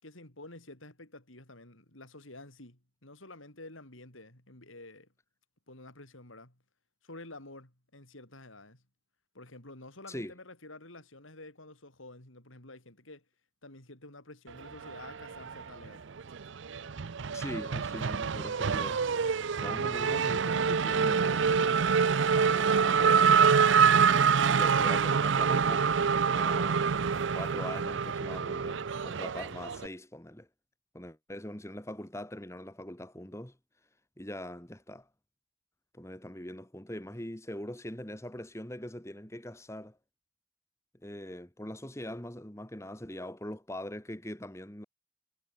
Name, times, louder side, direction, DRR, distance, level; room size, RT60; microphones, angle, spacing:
voice 1, 0.0-5.1 5.7-6.6 7.0-8.8 9.3-13.2 13.6-16.0, left 2 dB, 80° left, 5.7 m, -50 dB
Race car auto racing / Accelerating revving vroom, 14.9-15.9 16.2-29.9, right 6 dB, 65° right, 0.5 m, -26 dB
voice 2, 17.3-19.0 19.6-21.7 22.3-23.6 24.5-26.0 26.2-27.0 27.3-30.5 30.9-33.6 34.2-35.1 35.9-40.0 41.0-44.8, left 1 dB, 15° left, 1.7 m, -42 dB
head